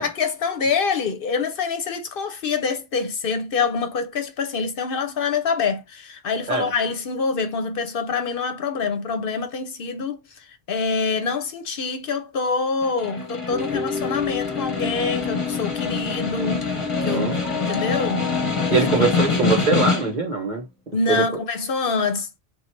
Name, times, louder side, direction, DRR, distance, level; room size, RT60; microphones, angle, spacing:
voice 1, 0.0-16.7 17.0-17.3 17.6-18.3 18.7-19.1 20.9-22.3, left 5 dB, 60° left, 0.8 m, -26 dB
Snare drum, 12.8-20.3, left 5 dB, 30° left, 0.8 m, -26 dB
sound 1, 13.5-19.6, left 3 dB, 10° right, 0.8 m, -31 dB
voice 2, 18.7-20.6 21.1-21.2, right 4 dB, 45° right, 1.1 m, -22 dB
3.9 x 2.3 x 4.4 m
omnidirectional pair, 1.1 m